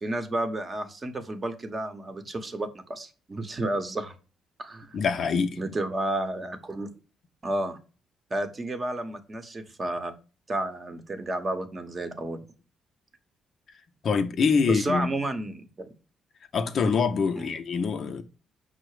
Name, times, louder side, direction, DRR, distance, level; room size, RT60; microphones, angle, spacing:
voice 1, 0.0-4.1 4.6-4.9 5.6-6.9 7.4-7.8 8.3-10.1 10.5-12.4 14.7-15.9 16.8-16.9 17.4-17.5, right 1 dB, 30° right, 0.8 m, -31 dB
voice 2, 4.9-5.6 14.0-15.1 16.5-18.2, left 5 dB, 55° left, 0.5 m, -25 dB
5.4 x 2.0 x 4.7 m
cardioid pair, 90°, 0 cm